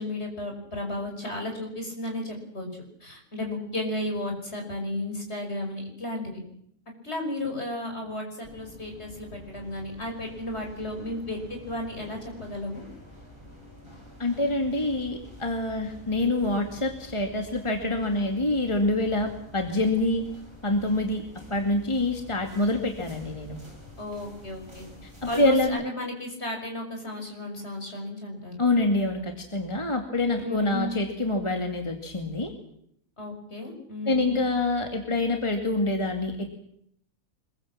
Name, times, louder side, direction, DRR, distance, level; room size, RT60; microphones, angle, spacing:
voice 1, 0.0-2.7 3.0-6.4 7.0-12.8 24.0-24.9 25.3-28.5 30.4-31.0 33.2-34.3, left 1 dB, 50° left, 2 dB, 6.3 m, -34 dB
sound 1, 8.4-25.7, left 1 dB, 20° right, 8.1 m, -48 dB
voice 2, 14.2-20.3 20.6-21.2 21.5-23.6 25.0-25.8 28.6-32.5 34.0-36.5, left 2 dB, 20° left, 3 dB, 2.4 m, -26 dB
25.0 x 22.5 x 7.5 m, 0.70 s
omnidirectional pair, 1.4 m